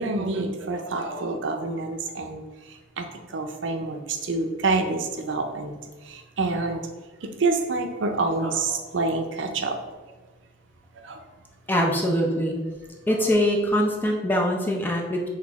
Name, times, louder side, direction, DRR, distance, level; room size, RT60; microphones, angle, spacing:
voice 1, 0.0-2.4 3.0-3.1 3.3-5.8 6.1-6.9 7.2-9.8 11.0-11.2, right 3 dB, 75° right, 4 dB, 0.5 m, -27 dB
voice 2, 11.7-12.6 13.1-15.3, equal, 10° left, 0 dB, 0.5 m, -23 dB
6.0 x 2.5 x 3.5 m, 1.3 s
head